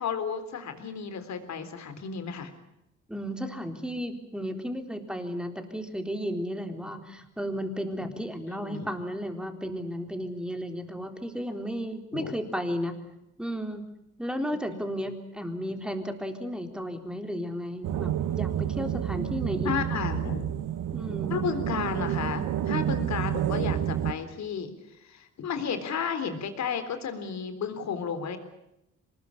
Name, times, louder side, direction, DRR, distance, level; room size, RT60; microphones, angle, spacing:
voice 1, 0.0-2.5 6.8-6.9 8.6-9.0 12.1-12.3 14.7-14.8 19.6-20.5 21.3-24.7 25.0-28.4, left 6 dB, 65° left, 9 dB, 3.8 m, -33 dB
voice 2, 3.1-12.9 13.4-13.8 14.2-19.7 20.9-21.3, equal, 5° right, 6 dB, 3.8 m, -34 dB
sound 1, 17.8-24.1, right 11 dB, 85° right, 1.3 m, -29 dB
24.5 x 20.5 x 8.5 m, 0.86 s
cardioid pair, 90°, 30 cm